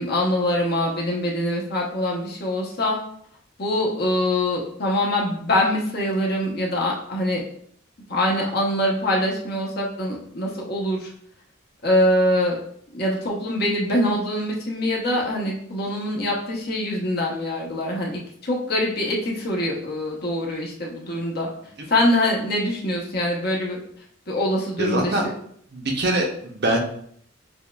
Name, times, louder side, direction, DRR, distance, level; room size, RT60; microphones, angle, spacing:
voice 1, 0.0-3.0 3.6-7.4 8.1-11.1 11.8-12.6 12.9-21.5 21.9-23.8 24.3-25.1, left 1 dB, 50° left, -2 dB, 0.9 m, -24 dB
voice 2, 24.8-25.3 25.7-26.8, right 1 dB, 50° right, 1 dB, 0.7 m, -23 dB
7.0 x 2.4 x 2.3 m, 0.65 s
head